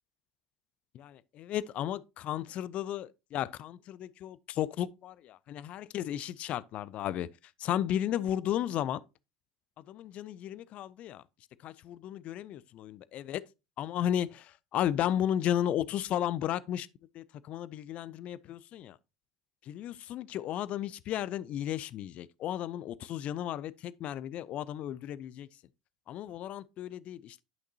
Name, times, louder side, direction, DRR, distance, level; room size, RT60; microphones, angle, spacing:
voice 1, 0.9-7.3 7.6-9.0 9.9-11.2 11.6-13.4 13.8-16.9 17.1-19.0 19.7-25.5 26.1-27.4, left 11 dB, 45° left, 0.4 m, -34 dB
11.0 x 5.8 x 2.8 m
hypercardioid pair, 75°, 3 cm